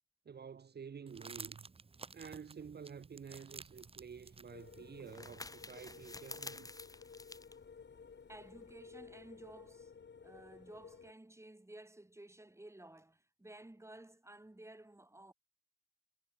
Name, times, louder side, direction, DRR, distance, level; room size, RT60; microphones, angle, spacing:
voice 1, 0.3-1.7 2.1-6.7, right 6 dB, 70° right, 0.9 m, -50 dB
sound 1, 1.1-6.1, right 4 dB, 35° right, 0.8 m, -53 dB
sound 2, 3.6-8.7, left 2 dB, 20° left, 1.3 m, -52 dB
sound 3, 4.5-11.1, left 6 dB, 85° left, 6.2 m, -55 dB
voice 2, 8.3-9.9 10.2-15.3, right 1 dB, 15° right, 5.3 m, -55 dB
wide cardioid pair, 120°, 18 cm